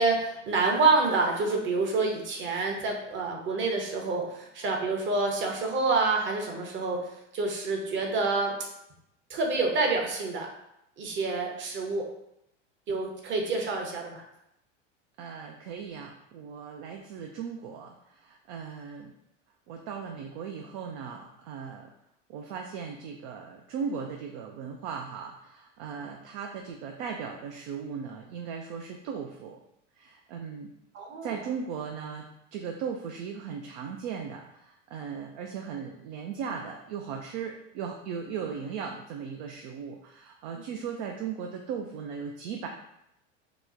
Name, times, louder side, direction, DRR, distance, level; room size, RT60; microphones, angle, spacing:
voice 1, 0.0-7.1 7.3-8.5 9.3-10.5 11.0-12.1 12.9-14.2 30.9-31.4, right 3 dB, 30° right, 1 dB, 0.8 m, -27 dB
voice 2, 15.2-19.1 19.7-21.9 22.3-29.6 30.0-30.7 31.2-42.7, right 6 dB, 55° right, 2 dB, 0.5 m, -37 dB
2.9 x 2.1 x 3.7 m, 0.81 s
hypercardioid pair, 95°, 37 cm